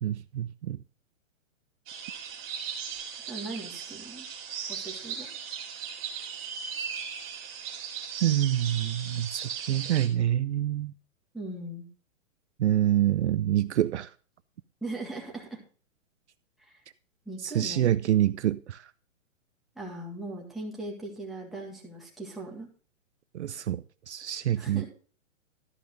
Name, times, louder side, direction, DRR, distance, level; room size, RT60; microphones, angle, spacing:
voice 1, 0.0-0.8 8.2-10.9 12.6-14.1 17.4-18.9 23.3-24.9, right 12 dB, 60° right, 0.5 m, -26 dB
sound 1, 1.9-10.1, right 7 dB, 25° right, 2.3 m, -38 dB
voice 2, 3.3-4.3 4.7-5.3 11.3-11.9 14.8-15.6 16.7-16.8 17.3-17.9 19.8-22.7 24.6-24.9, right 2 dB, ahead, 1.8 m, -39 dB
13.0 x 5.4 x 6.4 m
hypercardioid pair, 165°, 39 cm